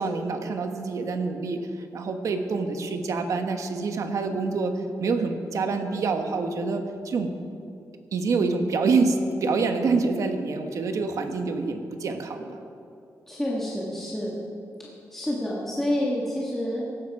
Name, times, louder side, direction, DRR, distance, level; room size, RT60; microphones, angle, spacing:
voice 1, 0.0-1.6 1.9-7.3 8.1-12.6, right 4 dB, 60° right, 6 dB, 1.3 m, -26 dB
voice 2, 13.3-14.4 14.8-16.8, left 1 dB, 5° left, -5 dB, 1.7 m, -28 dB
17.0 x 12.5 x 4.8 m, 2.5 s
wide cardioid pair, 170°, 6 cm